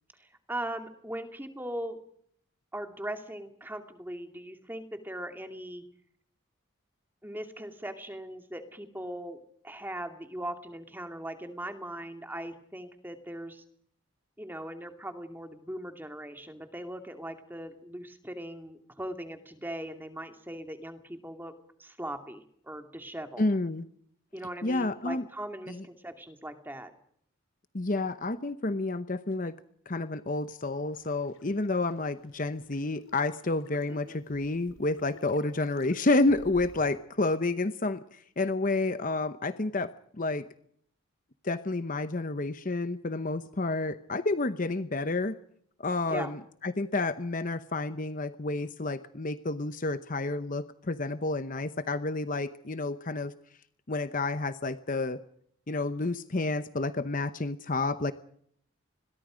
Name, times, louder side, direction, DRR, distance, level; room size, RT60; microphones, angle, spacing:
voice 1, 0.2-2.0 2.7-5.8 7.2-13.6 14.4-21.5 21.8-23.4 24.3-26.9 33.9-34.2 46.1-46.3, right 1 dB, 10° right, 6 dB, 2.3 m, -39 dB
voice 2, 23.4-23.8 24.6-25.2 25.7-25.8 27.7-29.5 29.9-39.9 40.2-40.5 41.4-45.4 45.8-53.3 53.9-55.2 55.7-58.1, left 2 dB, 40° left, 12 dB, 0.8 m, -30 dB
sound 1, 30.9-36.9, left 1 dB, 70° left, 4.4 m, -55 dB
28.0 x 21.5 x 5.1 m, 0.64 s
head